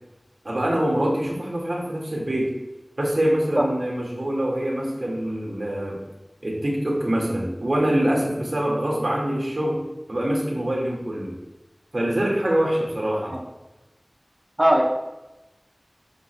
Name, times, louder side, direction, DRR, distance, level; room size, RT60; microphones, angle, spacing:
voice 1, 0.4-2.5 3.0-6.0 6.4-9.8 10.1-11.4 11.9-13.4, right 1 dB, 75° right, -3 dB, 2.0 m, -24 dB
voice 2, 3.6-3.7 13.2-13.4 14.6-14.8, right 1 dB, 25° right, -1 dB, 1.0 m, -20 dB
12.0 x 4.9 x 2.3 m, 1.0 s
wide cardioid pair, 45°, 0 cm